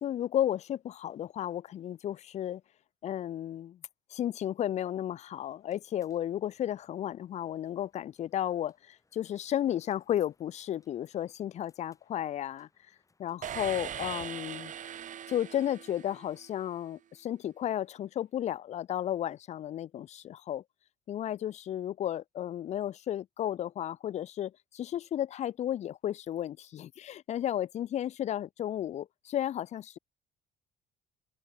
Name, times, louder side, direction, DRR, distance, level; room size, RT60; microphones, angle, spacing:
voice 1, 0.0-2.6 3.0-3.8 4.1-12.7 13.2-14.7 15.3-20.6 21.1-30.0, left 11 dB, 40° left, 0.4 m, -33 dB
sound 1, 5.3-13.7, left 3 dB, 20° left, 7.3 m, -73 dB
sound 2, 13.4-16.6, right 10 dB, 50° right, 1.3 m, -41 dB
open air
cardioid pair, 110°, 17 cm